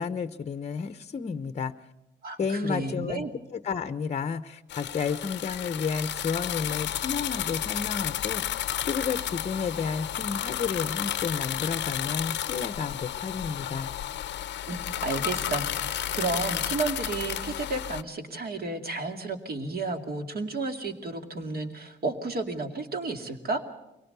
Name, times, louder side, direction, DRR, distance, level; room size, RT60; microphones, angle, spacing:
voice 1, 0.0-1.7 2.4-3.2 3.5-8.4 8.9-13.9, left 5 dB, 35° left, 12 dB, 0.8 m, -31 dB
voice 2, 2.2-3.3 14.7-23.6, right 3 dB, 50° right, 5 dB, 2.5 m, -32 dB
sound 1, 4.7-18.0, left 11 dB, 65° left, 0.7 m, -32 dB
24.0 x 18.0 x 6.7 m, 0.94 s
cardioid pair, 90°, 20 cm